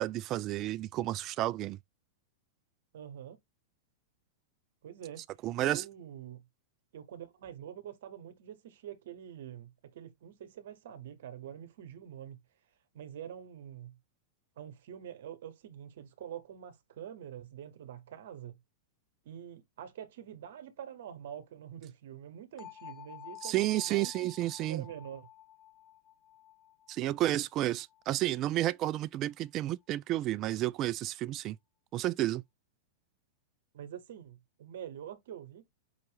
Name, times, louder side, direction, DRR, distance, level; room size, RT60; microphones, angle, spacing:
voice 1, 0.0-1.8 5.4-5.8 23.4-24.8 26.9-31.6 31.9-32.4, right 15 dB, 40° right, 0.4 m, -31 dB
voice 2, 2.9-3.4 4.8-5.2 5.6-6.4 6.9-12.4 12.9-13.9 14.6-18.6 19.2-24.3 24.6-25.3 33.7-35.7, right 10 dB, 65° right, 1.1 m, -46 dB
sound 1, 22.6-28.4, left 12 dB, 30° left, 1.0 m, -52 dB
5.7 x 2.5 x 3.3 m
figure-of-eight pair, 100°, 0 cm